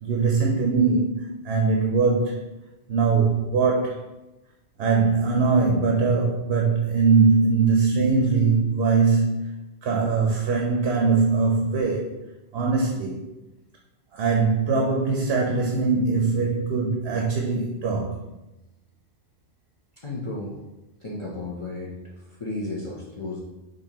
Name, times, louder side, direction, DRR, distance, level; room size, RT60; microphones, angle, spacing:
voice 1, 0.0-2.4 2.9-4.1 4.8-9.5 9.8-12.1 12.5-13.2 14.1-18.2, right 4 dB, 85° right, 0 dB, 0.8 m, -21 dB
voice 2, 20.0-20.5 21.0-23.4, left 2 dB, 35° left, -5 dB, 0.7 m, -33 dB
5.2 x 2.5 x 2.9 m, 0.99 s
omnidirectional pair, 1.0 m